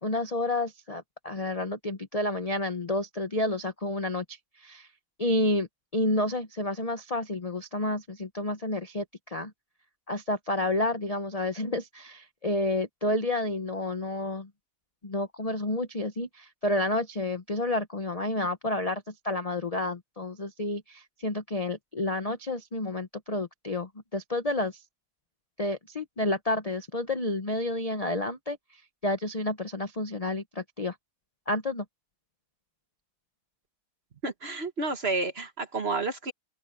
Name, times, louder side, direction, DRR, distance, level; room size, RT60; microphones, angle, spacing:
voice 1, 0.0-4.9 5.2-5.7 5.9-9.5 10.1-14.5 15.0-24.8 25.6-30.9 31.5-31.8, left 1 dB, 45° left, 0.5 m, -30 dB
voice 2, 34.2-36.3, right 3 dB, 35° right, 1.3 m, -30 dB
open air
omnidirectional pair, 2.2 m